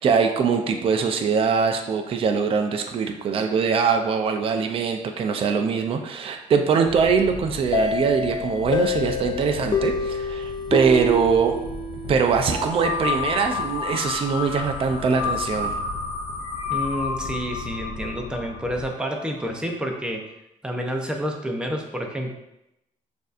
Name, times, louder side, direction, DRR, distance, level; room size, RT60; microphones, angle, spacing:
voice 1, 0.0-11.6 12.1-15.8, right 5 dB, 45° right, 5 dB, 0.4 m, -22 dB
sound 1, 6.8-18.9, left 5 dB, 90° left, 0.4 m, -39 dB
sound 2, 7.7-12.4, left 3 dB, 35° left, 0.5 m, -27 dB
sound 3, 12.4-19.2, left 5 dB, 55° left, 0.9 m, -30 dB
voice 2, 16.7-20.2 20.6-22.3, equal, 5° right, 1 dB, 0.7 m, -29 dB
6.4 x 2.7 x 2.5 m, 0.86 s
cardioid pair, 110°, 13 cm